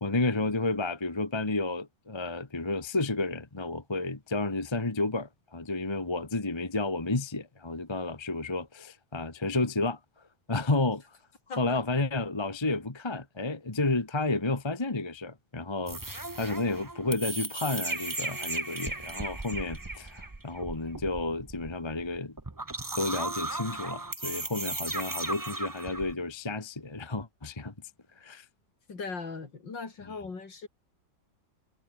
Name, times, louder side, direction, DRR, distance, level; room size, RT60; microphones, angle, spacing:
voice 1, 0.0-10.0 10.5-11.2 11.5-22.4 22.9-27.7 28.1-28.5 30.0-30.1, left 2 dB, 15° left, 1.3 m, -31 dB
voice 2, 11.5-11.8 28.9-30.7, left 4 dB, 70° left, 4.3 m, -39 dB
sound 1, 15.9-26.1, right 2 dB, 15° right, 0.8 m, -36 dB
omnidirectional pair, 2.0 m